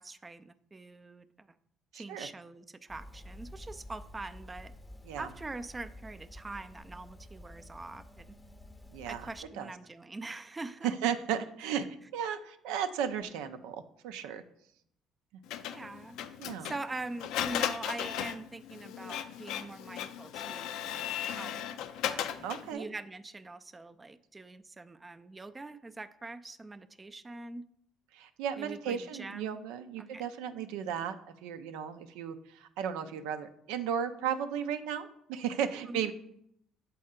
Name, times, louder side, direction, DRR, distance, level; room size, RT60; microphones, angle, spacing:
voice 1, 0.0-1.5 1.9-4.7 5.2-8.3 9.1-10.9 15.6-16.2 16.6-21.6 22.0-27.6 28.6-29.6 30.0-30.3 35.9-36.1, right 2 dB, 20° right, 10 dB, 0.4 m, -43 dB
voice 2, 1.9-2.3 5.0-5.3 8.9-9.3 9.6-9.7 10.8-14.4 16.4-16.7 22.4-22.9 28.1-31.2 31.4-36.1, right 8 dB, 85° right, 9 dB, 0.4 m, -35 dB
sound 1, 2.9-9.4, left 1 dB, 20° left, 0.6 m, -50 dB
Printer, 15.5-22.7, left 10 dB, 80° left, 0.4 m, -36 dB
7.5 x 4.3 x 3.7 m, 0.73 s
supercardioid pair, 85°, 0 cm